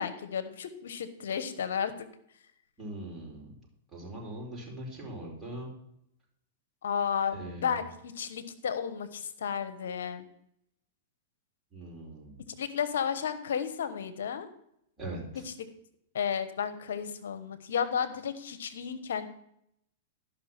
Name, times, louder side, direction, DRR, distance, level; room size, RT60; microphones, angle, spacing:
voice 1, 0.0-2.1 6.8-10.3 12.6-14.5 15.4-15.7 16.1-19.3, left 7 dB, 80° left, 12 dB, 1.1 m, -33 dB
voice 2, 2.8-3.5 3.9-5.7 7.3-7.7 11.7-12.4 15.0-15.4, right 1 dB, 15° right, -3 dB, 4.8 m, -41 dB
12.0 x 5.8 x 5.8 m, 0.74 s
hypercardioid pair, 120°, 0 cm